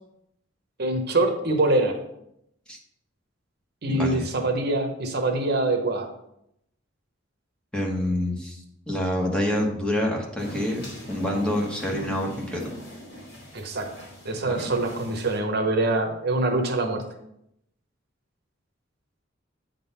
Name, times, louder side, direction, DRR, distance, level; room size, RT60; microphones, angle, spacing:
voice 1, 0.8-2.0 3.8-6.1 13.5-13.9 14.2-17.0, right 2 dB, 55° right, 4 dB, 0.9 m, -24 dB
voice 2, 3.9-4.3 7.7-10.8 11.1-12.7 14.5-14.6, left 1 dB, 5° left, -1 dB, 1.2 m, -27 dB
sound 1, 10.4-15.4, left 1 dB, 55° left, 2.8 m, -39 dB
8.5 x 3.9 x 5.5 m, 0.79 s
head